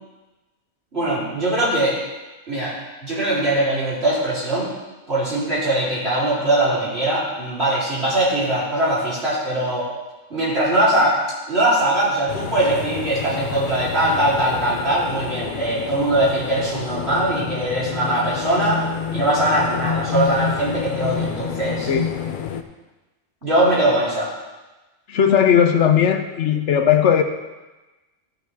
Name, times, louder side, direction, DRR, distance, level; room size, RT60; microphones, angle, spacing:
voice 1, 0.9-2.0 2.5-2.8 3.0-4.7 5.1-9.9 10.3-11.2 11.5-18.8 19.1-21.9 23.4-24.3, right 1 dB, 65° right, -8 dB, 4.0 m, -21 dB
sound 1, 12.3-22.6, left 7 dB, 55° left, 0.7 m, -29 dB
voice 2, 25.1-27.2, left 8 dB, 85° left, 7 dB, 1.1 m, -17 dB
13.5 x 7.1 x 3.5 m, 1.1 s
omnidirectional pair, 1.2 m